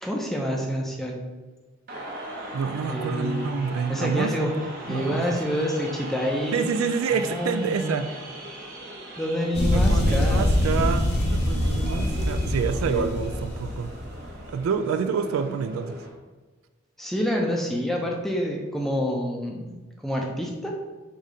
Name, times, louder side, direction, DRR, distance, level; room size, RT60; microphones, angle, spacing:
voice 1, 0.0-1.2 2.7-3.5 3.9-4.6 4.9-6.7 7.2-8.0 9.2-10.5 12.8-13.1 17.0-20.7, equal, ahead, -1 dB, 0.5 m, -28 dB
sound 1, 1.9-16.1, right 1 dB, 45° right, 0.8 m, -39 dB
voice 2, 2.5-4.4 4.9-5.4 6.5-8.1 9.7-13.9 14.5-16.0, right 5 dB, 85° right, 9 dB, 0.3 m, -27 dB
sound 2, 9.5-14.4, left 1 dB, 50° left, 0.5 m, -24 dB
4.8 x 2.7 x 3.7 m, 1.3 s
head